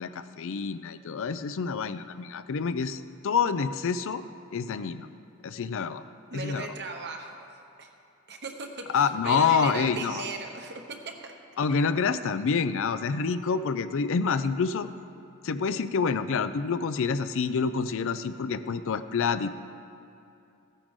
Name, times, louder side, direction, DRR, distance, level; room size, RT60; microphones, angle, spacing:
voice 1, 0.0-4.2 4.5-5.1 5.4-6.0 6.3-6.7 8.9-10.2 11.6-14.9 15.4-19.5, left 5 dB, 60° left, 12 dB, 0.4 m, -27 dB
voice 2, 6.3-7.5 7.8-7.9 8.3-11.3, right 3 dB, 50° right, 4 dB, 1.0 m, -38 dB
14.5 x 9.9 x 3.7 m, 2.7 s
head